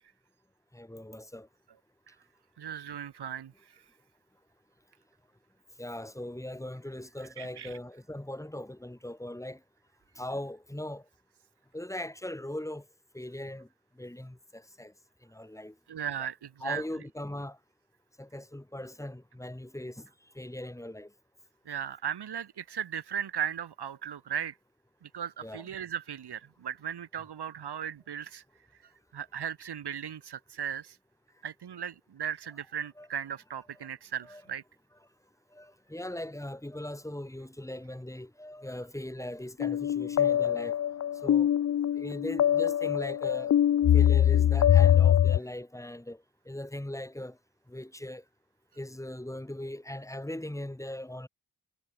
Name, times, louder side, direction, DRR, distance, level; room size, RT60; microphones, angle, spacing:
voice 1, 0.7-1.5 5.8-9.6 10.2-11.0 11.7-12.8 13.1-13.7 14.0-14.9 15.3-15.7 16.6-17.6 18.2-20.1 20.4-21.1 25.4-25.6 33.0-33.1 34.3-34.4 35.5-40.8 41.2-41.5 42.0-43.5 43.9-46.2 46.5-47.4 47.7-48.2 48.8-51.3, left 1 dB, 5° left, 4.0 m, -39 dB
voice 2, 2.6-3.8 7.2-7.8 15.9-16.8 21.7-24.6 25.0-28.4 28.8-31.0 31.4-34.6, right 8 dB, 65° right, 1.9 m, -37 dB
sound 1, 39.6-45.4, left 10 dB, 40° left, 0.4 m, -23 dB
wide cardioid pair, 140°, 43 cm